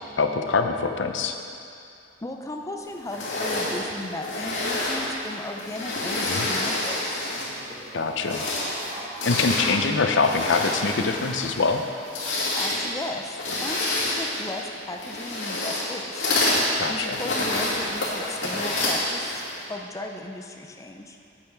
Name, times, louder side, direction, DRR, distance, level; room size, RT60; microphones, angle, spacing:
voice 1, 0.2-1.4 6.3-6.5 7.9-8.4 9.2-11.8 16.8-17.2, left 4 dB, 70° left, 6 dB, 0.6 m, -24 dB
voice 2, 2.2-7.2 12.6-16.3 16.9-19.4 19.7-21.2, left 2 dB, 15° left, 3 dB, 0.5 m, -36 dB
sound 1, 3.1-7.7 8.1-19.6, left 2 dB, 85° left, 2.2 m, -28 dB
sound 2, 7.3-12.4, right 1 dB, 30° right, 1.8 m, -42 dB
8.7 x 8.7 x 4.6 m, 2.5 s
head